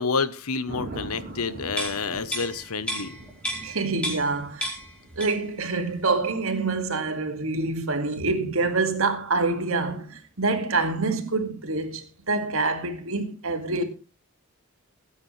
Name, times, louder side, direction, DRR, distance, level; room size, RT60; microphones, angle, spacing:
voice 1, 0.0-3.2, left 4 dB, 80° left, 1.1 m, -29 dB
Thunder, 0.7-8.7 11.4-11.8, right 1 dB, 40° right, 4.4 m, -44 dB
sound 1, 1.8-4.4 4.6-5.6 5.9-6.0, equal, 5° left, 4.4 m, -33 dB
voice 2, 3.6-4.7 5.2-13.8, right 3 dB, 65° right, 2.2 m, -26 dB
19.0 x 9.6 x 3.4 m
head